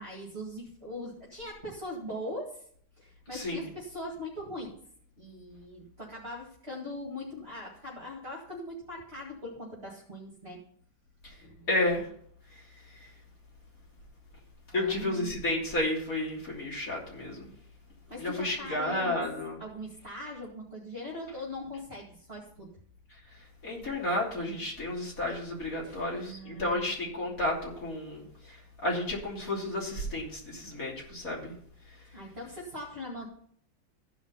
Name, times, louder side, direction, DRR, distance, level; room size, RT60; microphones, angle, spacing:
voice 1, 0.0-2.7 3.0-4.7 5.2-10.6 11.4-11.7 14.7-15.3 18.1-19.2 19.6-22.7 25.8-26.9 32.1-33.3, left 1 dB, 30° right, -4 dB, 2.3 m, -41 dB
voice 2, 3.3-3.6 11.2-11.3 11.7-12.1 13.0-13.1 14.7-17.5 18.2-19.6 23.6-31.5, left 1 dB, 45° left, -3 dB, 3.6 m, -32 dB
15.0 x 5.1 x 5.6 m, 0.62 s
omnidirectional pair, 2.1 m